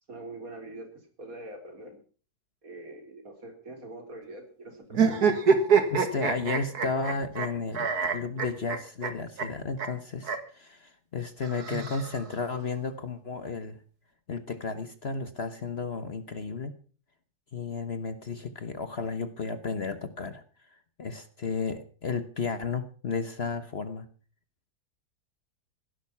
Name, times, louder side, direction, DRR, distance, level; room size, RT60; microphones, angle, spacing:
voice 1, 0.1-0.9 1.2-2.0 2.6-5.2, right 2 dB, 60° right, 5 dB, 4.2 m, -43 dB
sound 1, 4.9-7.5 7.7-9.1 9.4-9.5 9.8-9.9 10.2-10.4 11.4-12.4, right 6 dB, 75° right, 2.3 m, -25 dB
voice 2, 5.9-13.8 14.3-16.7 17.5-20.4 20.7-24.1, left 4 dB, 45° left, 11 dB, 1.3 m, -33 dB
17.0 x 11.5 x 5.9 m, 0.40 s
omnidirectional pair, 1.7 m